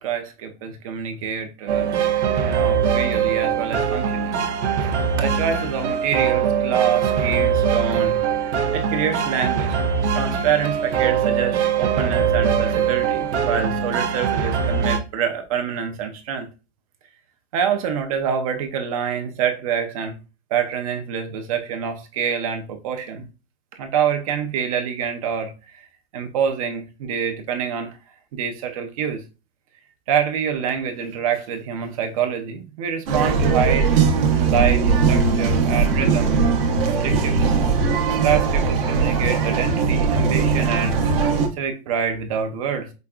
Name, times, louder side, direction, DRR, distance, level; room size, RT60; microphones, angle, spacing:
voice 1, 0.0-2.0 2.4-4.5 4.8-4.9 5.2-9.7 10.1-16.5 17.5-20.2 20.5-23.3 23.8-25.9 26.1-28.0 28.3-29.2 30.1-33.9 34.4-36.3 36.8-37.5 38.2-41.1 41.5-42.9, right 7 dB, 35° right, 0.5 m, -26 dB
sound 1, 1.7-15.0, right 7 dB, 90° right, 0.8 m, -22 dB
sound 2, 33.1-41.5, right 5 dB, 55° right, 0.9 m, -19 dB
5.1 x 2.2 x 2.3 m
hypercardioid pair, 155°, 33 cm